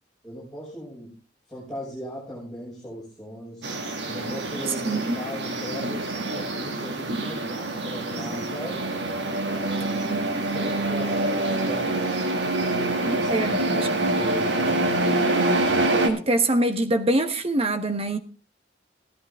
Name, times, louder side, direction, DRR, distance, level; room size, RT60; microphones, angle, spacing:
voice 1, 0.2-1.1 1.5-3.7 4.1-8.9 9.4-12.0 12.4-14.9, equal, 5° left, 5.9 m, -38 dB
sound 1, 3.6-16.1, right 2 dB, 75° right, 2.0 m, -26 dB
voice 2, 4.9-5.2 10.0-10.3 13.0-14.2 16.0-18.2, right 1 dB, 35° right, 1.1 m, -25 dB
16.0 x 11.0 x 3.6 m
head